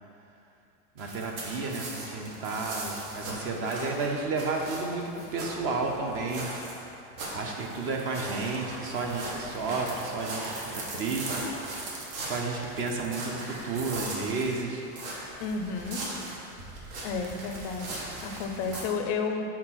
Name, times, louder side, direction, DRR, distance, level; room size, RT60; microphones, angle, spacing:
voice 1, 1.0-6.5 7.3-11.4 12.2-14.8, right 3 dB, 30° right, 1 dB, 0.6 m, -32 dB
sound 1, 1.0-18.8, right 2 dB, 70° right, 1.5 m, -39 dB
voice 2, 15.4-16.0 17.0-19.4, left 4 dB, 35° left, 4 dB, 0.5 m, -32 dB
4.7 x 4.4 x 5.7 m, 2.5 s
supercardioid pair, 145°, 44 cm